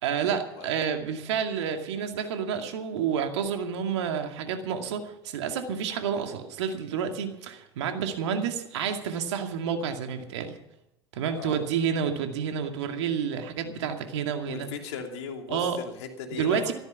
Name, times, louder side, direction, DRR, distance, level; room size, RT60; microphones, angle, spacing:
voice 1, 0.0-10.5 11.1-14.7 15.5-15.8 16.3-16.7, right 7 dB, 75° right, 5 dB, 2.3 m, -29 dB
voice 2, 11.4-11.7 14.4-16.7, left 6 dB, 70° left, 3 dB, 2.9 m, -37 dB
15.0 x 13.0 x 5.9 m, 0.85 s
hypercardioid pair, 75°, 15 cm